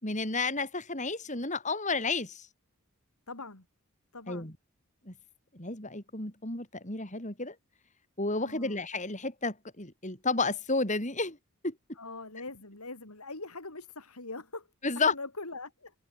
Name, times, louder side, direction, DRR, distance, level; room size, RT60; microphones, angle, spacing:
voice 1, 0.0-2.5 4.3-4.5 5.1-5.2 5.5-7.6 8.2-11.4 11.6-11.7 14.8-15.1, left 3 dB, 35° left, 5.3 m, -31 dB
voice 2, 3.3-3.6 4.1-4.5 8.4-8.8 12.0-14.7 15.1-15.9, left 3 dB, 90° left, 4.9 m, -42 dB
head